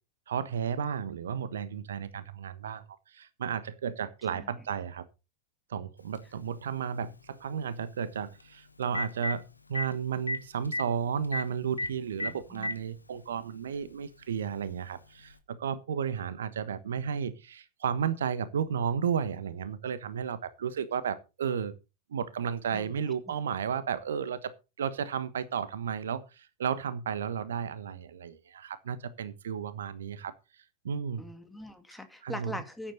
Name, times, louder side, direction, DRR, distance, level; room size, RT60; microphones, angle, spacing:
voice 1, 0.3-5.1 5.7-21.7 22.1-30.3 30.8-31.2 32.2-32.6, right 7 dB, 65° right, 1.3 m, -33 dB
Telephone, 6.1-6.2 8.4-8.5 8.8-9.3 9.7-9.9 10.3-10.4 10.6-10.8 11.3-11.4 11.8-11.9 12.2-12.8 13.8-13.9 15.3-15.4, left 2 dB, 80° left, 1.2 m, -31 dB
voice 2, 12.2-12.7 22.7-23.3 31.2-32.9, left 1 dB, 5° left, 2.3 m, -43 dB
15.0 x 10.0 x 4.0 m
figure-of-eight pair, 90°, 0 cm